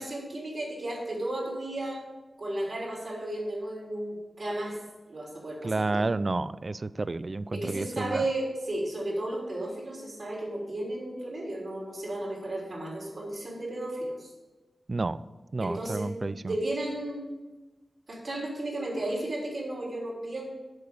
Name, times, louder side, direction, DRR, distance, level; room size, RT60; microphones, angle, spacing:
voice 1, 0.0-2.0 2.4-4.8 5.1-6.1 7.5-14.3 15.6-16.1 16.4-17.3 18.1-20.4, right 1 dB, 60° right, -3 dB, 3.7 m, -34 dB
voice 2, 5.6-8.2 14.9-15.2 15.5-16.5, right 3 dB, 40° right, 16 dB, 0.3 m, -30 dB
8.1 x 6.7 x 7.0 m, 1.2 s
wide cardioid pair, 95°, 0 cm